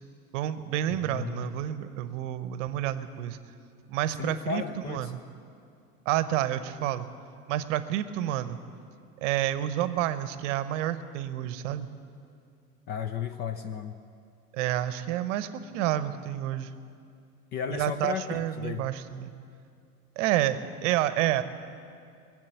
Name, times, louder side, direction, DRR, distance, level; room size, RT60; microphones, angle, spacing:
voice 1, 0.3-3.4 3.9-5.2 6.1-7.1 7.5-8.6 9.2-11.9 14.5-16.7 17.7-19.3 20.2-21.4, right 12 dB, 50° right, 13 dB, 0.9 m, -29 dB
voice 2, 0.9-1.6 4.2-5.1 12.9-14.0 17.5-18.9, left 8 dB, 25° left, 9 dB, 0.4 m, -34 dB
22.0 x 7.7 x 7.7 m, 2.4 s
hypercardioid pair, 95°, 46 cm